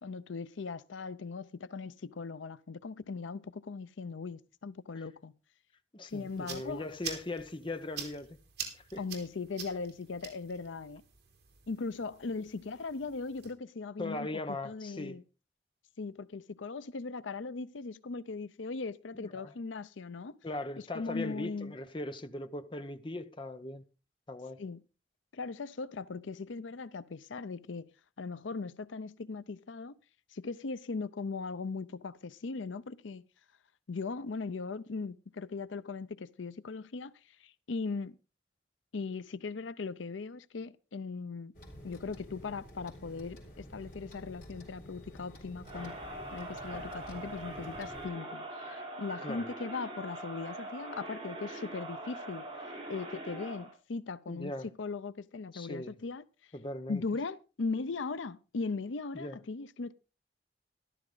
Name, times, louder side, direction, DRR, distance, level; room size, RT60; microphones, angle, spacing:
voice 1, 0.0-5.3 6.0-6.9 9.0-11.0 11.7-14.3 14.6-15.2 16.0-20.4 20.9-21.7 24.6-24.8 25.3-27.9 28.2-30.0 30.3-33.2 33.9-38.2 38.9-41.5 41.8-46.0 46.3-52.5 52.9-54.5 54.8-56.5 56.9-59.9, left 4 dB, 85° left, 0.6 m, -39 dB
voice 2, 5.9-8.4 8.7-9.0 14.0-15.2 19.2-19.5 20.4-23.8 24.3-24.6 49.2-49.5 54.3-54.7 55.5-56.0 56.5-57.0 59.1-59.4, left 2 dB, 25° left, 0.8 m, -39 dB
sound 1, 6.1-13.5, right 7 dB, 65° right, 3.5 m, -46 dB
sound 2, 41.5-48.1, equal, 45° left, 4.7 m, -50 dB
Crowd, 45.6-53.7, right 1 dB, 25° right, 6.1 m, -43 dB
14.0 x 12.5 x 3.9 m
head